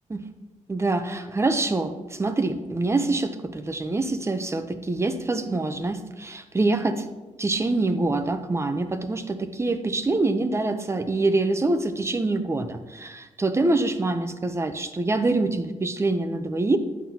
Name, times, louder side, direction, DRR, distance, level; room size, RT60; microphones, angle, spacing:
voice 1, 0.7-7.1 7.4-16.8, right 2 dB, 20° right, 9 dB, 0.6 m, -25 dB
9.3 x 7.3 x 2.8 m, 1.2 s
cardioid pair, 100°, 13 cm